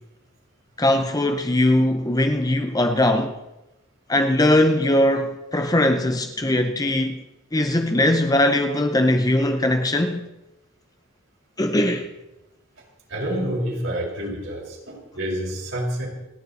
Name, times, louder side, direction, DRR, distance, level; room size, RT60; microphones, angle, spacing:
voice 1, 0.8-3.4 4.1-7.2 7.5-10.2 11.6-12.1, left 1 dB, 20° left, 0.8 m, -20 dB
voice 2, 13.1-16.1, equal, 70° right, 5.2 m, -28 dB
28.5 x 9.8 x 4.3 m
head